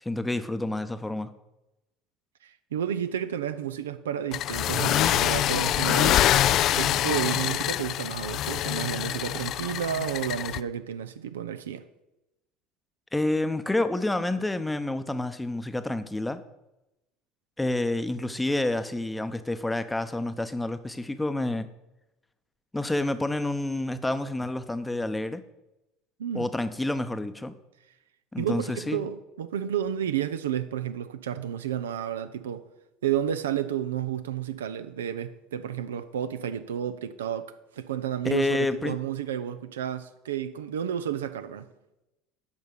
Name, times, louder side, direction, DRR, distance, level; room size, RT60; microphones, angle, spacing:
voice 1, 0.0-1.3 13.1-16.4 17.6-21.7 22.7-25.4 26.3-27.5 28.3-29.1 38.2-39.0, left 2 dB, 10° left, 0.8 m, -28 dB
voice 2, 2.7-6.2 6.7-11.8 26.2-26.5 28.4-32.6 33.0-41.7, right 9 dB, 80° right, 0.5 m, -31 dB
sound 1, 4.3-10.6, left 12 dB, 50° left, 0.3 m, -25 dB
8.7 x 5.6 x 6.4 m
hypercardioid pair, 70°, 0 cm